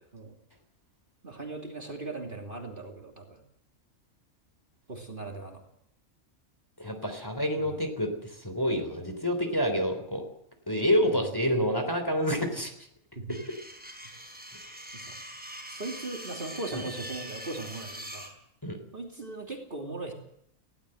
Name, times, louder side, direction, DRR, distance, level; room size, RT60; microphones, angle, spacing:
voice 1, 1.2-3.4 4.9-5.6 7.0-7.1 7.5-7.8 11.0-11.1 13.1-13.4 14.9-15.2 15.7-18.3 18.9-20.1, right 2 dB, 35° right, 2 dB, 3.0 m, -39 dB
voice 2, 6.8-8.1 8.4-10.2 10.7-12.7 16.7-16.8 18.6-18.8, equal, 15° left, 6 dB, 3.4 m, -28 dB
sound 1, 13.3-18.3, right 1 dB, 5° right, 4.6 m, -43 dB
20.0 x 17.0 x 7.8 m, 0.72 s
omnidirectional pair, 1.5 m